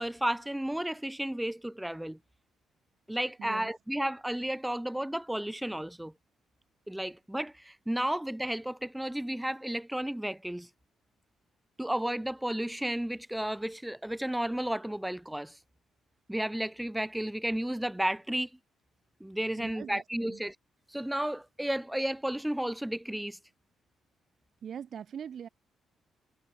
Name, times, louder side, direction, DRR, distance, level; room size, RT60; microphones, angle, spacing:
voice 1, 0.0-2.2 3.1-6.1 6.9-10.7 11.8-15.6 16.3-18.5 19.2-20.5 20.9-23.4, right 1 dB, 5° right, 3.8 m, -33 dB
voice 2, 3.4-3.7 19.6-20.4 24.6-25.5, right 8 dB, 55° right, 7.3 m, -42 dB
cardioid pair, 90°, 0 cm